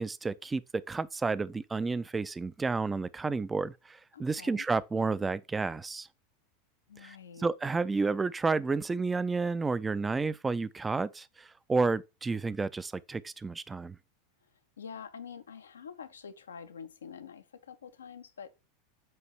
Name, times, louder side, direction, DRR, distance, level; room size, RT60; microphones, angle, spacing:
voice 1, 0.0-6.1 7.0-14.0, right 4 dB, 15° right, 0.4 m, -31 dB
voice 2, 4.1-4.6 6.9-7.5 14.8-18.5, left 7 dB, 80° left, 0.6 m, -46 dB
7.8 x 2.7 x 4.5 m
figure-of-eight pair, 85°, 0 cm